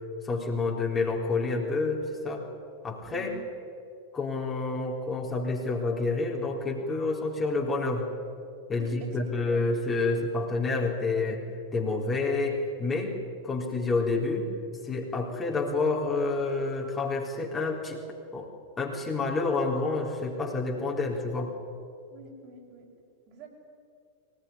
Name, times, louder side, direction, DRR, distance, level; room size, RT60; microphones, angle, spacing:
voice 1, 0.2-2.5 2.8-3.3 4.1-8.1 8.7-11.4 11.7-13.2 13.4-14.5 14.8-18.0 18.3-18.5 18.8-21.5, left 3 dB, 20° left, -1 dB, 3.9 m, -28 dB
voice 2, 8.8-9.6 22.1-22.9 23.3-23.5, right 4 dB, 40° right, 0 dB, 6.4 m, -44 dB
23.5 x 19.5 x 9.9 m, 2.3 s
figure-of-eight pair, 90°, 0 cm